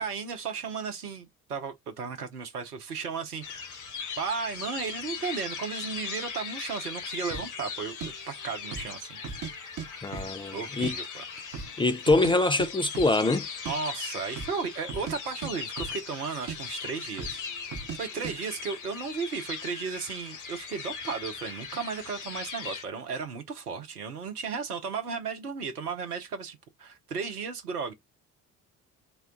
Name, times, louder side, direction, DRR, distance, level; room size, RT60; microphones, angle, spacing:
voice 1, 0.0-3.8 4.2-9.2 10.5-11.5 13.6-27.9, right 5 dB, 80° right, 0.8 m, -35 dB
sound 1, 3.4-22.8, left 6 dB, 40° left, 1.2 m, -39 dB
sound 2, 7.3-7.5 8.0-8.1 8.6-8.9 9.2-9.9 10.1-10.9 11.2-11.3 11.5-12.3 12.6-12.7 12.9-13.2 13.5-13.8 14.3-14.6 14.9-15.2 15.4-16.2 16.5-16.6 17.2-17.4 17.7-18.0 18.2-18.4, right 6 dB, 40° right, 1.0 m, -37 dB
voice 2, 10.0-10.9 11.8-13.5, left 2 dB, 10° left, 0.4 m, -24 dB
4.3 x 2.2 x 3.6 m
figure-of-eight pair, 50°, 45 cm